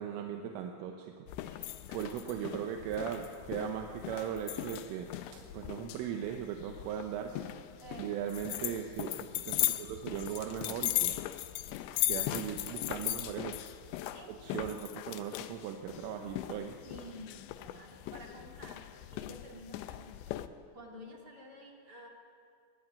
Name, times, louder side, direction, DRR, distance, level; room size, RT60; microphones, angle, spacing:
voice 1, 0.0-1.2 1.6-7.4 8.0-11.2 12.1-13.7 14.3-16.8, right 9 dB, 80° right, 4 dB, 3.6 m, -38 dB
sound 1, 1.3-20.5, left 15 dB, 80° left, 2.6 m, -38 dB
voice 2, 1.3-2.5 7.8-8.6 11.1-12.3 14.1-15.0 16.9-22.1, equal, 30° right, 1 dB, 2.0 m, -52 dB
21.5 x 20.5 x 9.0 m, 2.3 s
omnidirectional pair, 6.0 m